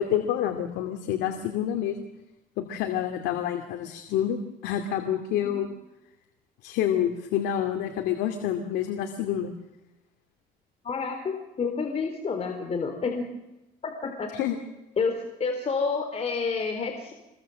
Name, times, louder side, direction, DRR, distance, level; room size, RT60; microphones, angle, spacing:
voice 1, 0.0-2.0 2.6-5.7 6.6-9.5 14.3-14.6, left 10 dB, 85° left, 5 dB, 2.5 m, -28 dB
voice 2, 5.3-5.6 10.8-13.4 13.8-14.3 15.0-17.1, left 4 dB, 40° left, 4 dB, 3.6 m, -29 dB
26.5 x 21.5 x 7.7 m, 0.97 s
cardioid pair, 110°, 17 cm